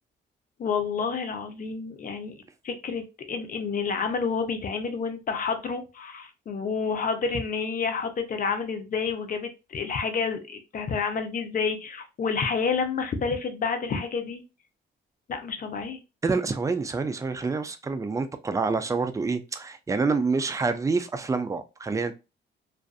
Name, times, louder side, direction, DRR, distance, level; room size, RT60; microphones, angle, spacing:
voice 1, 0.6-2.3 2.6-14.4 15.3-16.0, left 5 dB, 45° left, 0.7 m, -29 dB
voice 2, 16.2-22.1, right 4 dB, 15° right, 0.4 m, -27 dB
2.5 x 2.4 x 2.3 m
cardioid pair, 90°, 20 cm